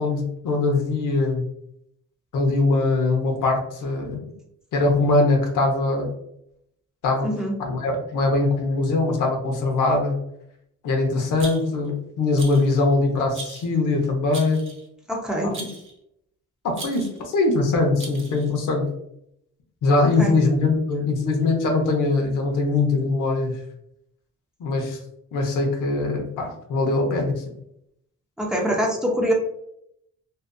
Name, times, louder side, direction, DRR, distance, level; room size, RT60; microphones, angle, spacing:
voice 1, 0.0-1.5 2.3-4.3 4.7-6.1 7.0-7.3 7.6-10.2 10.8-14.7 15.4-15.5 16.6-18.8 19.8-23.6 24.6-25.0 25.3-27.4, left 3 dB, 80° left, 1 dB, 0.8 m, -22 dB
voice 2, 7.2-7.6 15.1-15.5 20.2-20.3 28.4-29.3, equal, ahead, -1 dB, 0.7 m, -24 dB
Rattle, 11.4-11.9 12.4-12.7 13.3-13.7 14.3-14.9 15.5-15.9 16.7-17.2 18.0-18.5, right 3 dB, 40° right, 0.7 m, -38 dB
2.7 x 2.3 x 2.2 m, 0.74 s
cardioid pair, 90°, 31 cm